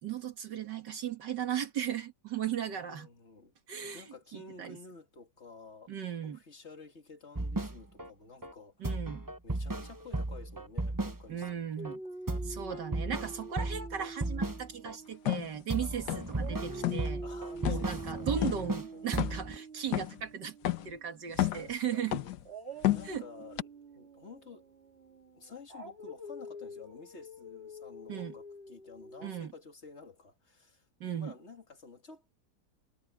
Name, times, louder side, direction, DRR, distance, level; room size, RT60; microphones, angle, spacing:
voice 1, 0.0-3.1 3.7-4.0 4.3-4.8 5.9-6.4 8.8-9.2 11.3-12.0 12.4-17.2 17.6-22.2 23.0-23.2 28.1-28.3 29.2-29.5 31.0-31.3, right 9 dB, 75° right, 2.3 m, -37 dB
voice 2, 2.6-3.5 3.9-5.9 6.2-9.0 9.4-11.7 13.7-14.0 15.8-16.6 17.2-19.1 21.5-22.3 22.8-24.6 25.3-30.9 31.1-32.3, left 4 dB, 40° left, 2.7 m, -52 dB
sound 1, 7.4-8.1 8.4-8.5 8.8-11.5 11.8-12.0 12.3-15.0 15.3-18.9 19.1-19.6, right 2 dB, 15° right, 0.8 m, -35 dB
Dog, 11.8-15.9 16.3-21.3 22.4-29.4, right 2 dB, 35° right, 2.4 m, -46 dB
sound 2, 15.3-15.5 16.1-16.4 16.7-17.1 17.6-17.9 18.4-18.6 19.2-19.5 19.9-20.2 20.6-20.9 21.3-21.7 22.1-22.4 22.8-23.2 23.6-23.7, left 14 dB, 75° left, 1.4 m, -30 dB
omnidirectional pair, 1.9 m